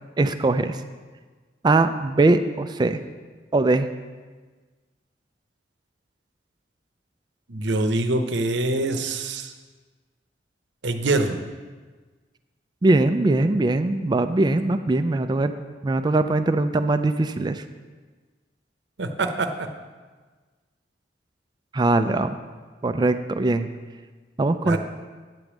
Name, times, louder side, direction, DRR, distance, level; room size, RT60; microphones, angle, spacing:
voice 1, 0.2-0.8 1.6-3.0 3.5-3.9 12.8-15.5 15.8-17.6 21.7-22.4 22.8-23.7 24.4-24.8, right 2 dB, 25° right, 9 dB, 0.3 m, -21 dB
voice 2, 7.5-9.5 10.8-11.4 19.0-19.7 24.6-24.8, right 2 dB, 75° right, 7 dB, 0.8 m, -24 dB
9.2 x 5.1 x 7.2 m, 1.4 s
head